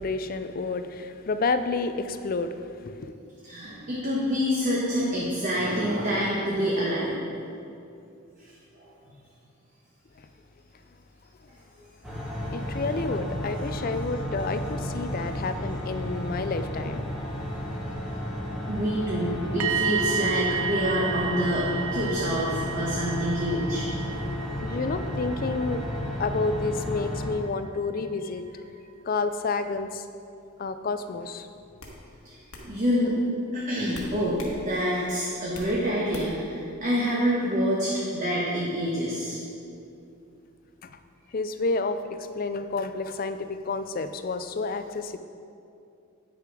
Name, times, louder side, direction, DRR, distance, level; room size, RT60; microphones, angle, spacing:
voice 1, 0.0-2.5 2.9-3.1 12.5-17.1 24.6-25.8 26.2-28.4 29.1-30.0 30.6-31.5 41.3-42.0 42.4-45.2, left 3 dB, 40° left, 10 dB, 0.4 m, -29 dB
voice 2, 3.4-7.1 8.4-8.5 8.8-8.9 13.1-13.2 18.7-23.8 32.2-32.4 32.6-33.2 33.5-39.4, equal, 35° right, -6 dB, 1.2 m, -27 dB
sound 1, 12.0-27.3, equal, ahead, 1.1 m, -33 dB
sound 2, 19.6-27.5 27.7-28.0, right 5 dB, 75° right, 0.4 m, -32 dB
sound 3, 31.0-31.2 31.8-32.0 32.5-32.7 33.9-34.6 34.9-35.7 36.1-36.5, left 1 dB, 70° left, 1.4 m, -41 dB
9.5 x 6.6 x 4.8 m, 2.6 s
head